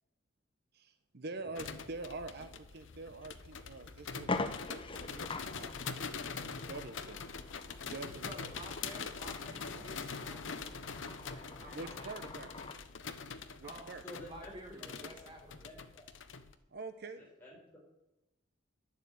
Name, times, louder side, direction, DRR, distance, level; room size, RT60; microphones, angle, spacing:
voice 1, 0.7-5.7 6.0-6.1 6.4-7.3 7.9-8.4 9.7-9.9 11.7-12.5 13.6-14.0 16.7-17.3, right 3 dB, 55° right, 9 dB, 0.8 m, -46 dB
sound 1, 1.5-16.5, left 5 dB, 75° left, 0.9 m, -44 dB
sound 2, 3.2-3.3 3.8-3.9 4.2-12.8, left 3 dB, 25° left, 0.8 m, -44 dB
voice 2, 8.0-12.2 13.6-14.0 14.2-15.7, right 1 dB, 25° right, 0 dB, 1.7 m, -51 dB
voice 3, 14.0-15.1 15.6-16.0 17.2-17.8, equal, 10° left, -3 dB, 4.5 m, -51 dB
11.0 x 7.5 x 8.5 m, 0.91 s
head